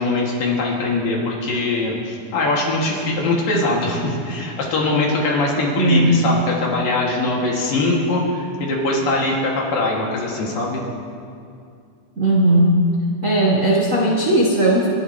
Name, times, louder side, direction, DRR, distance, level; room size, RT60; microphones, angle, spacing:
voice 1, 0.0-10.8, left 2 dB, 90° left, -3 dB, 4.0 m, -21 dB
voice 2, 5.8-6.2 12.2-12.8 13.2-14.9, right 1 dB, 80° right, -3 dB, 0.7 m, -17 dB
29.0 x 11.5 x 3.1 m, 2.4 s
omnidirectional pair, 3.8 m